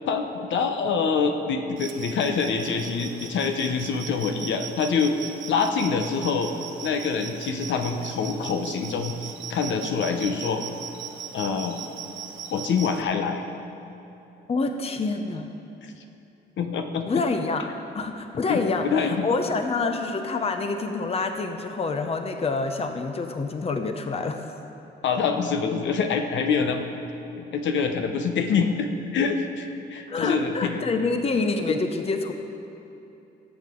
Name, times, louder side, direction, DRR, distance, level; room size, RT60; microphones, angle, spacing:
voice 1, 0.1-6.5 6.8-10.6 11.3-11.8 12.5-13.4 15.8-15.9 16.6-17.1 18.5-19.3 25.0-26.9 27.4-30.8 31.7-31.8, left 5 dB, 70° left, 5 dB, 0.9 m, -25 dB
sound 1, 1.8-13.0, right 8 dB, 70° right, 0.9 m, -39 dB
voice 2, 14.5-15.5 17.1-17.7 17.9-24.5 30.1-32.3, left 3 dB, 30° left, 6 dB, 0.7 m, -27 dB
18.0 x 7.6 x 3.8 m, 2.9 s
cardioid pair, 90°, 20 cm